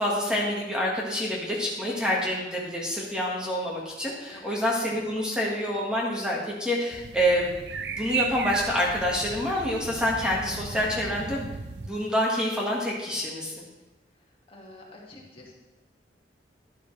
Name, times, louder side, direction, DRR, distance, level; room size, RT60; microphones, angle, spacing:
voice 1, 0.0-7.6 7.9-11.5 11.8-13.7, equal, 5° right, -4 dB, 1.6 m, -27 dB
sound 1, 6.9-11.9, right 5 dB, 75° right, 0.7 m, -35 dB
voice 2, 14.5-15.5, left 2 dB, 30° left, -2 dB, 2.0 m, -47 dB
12.0 x 11.0 x 3.3 m, 1.0 s
head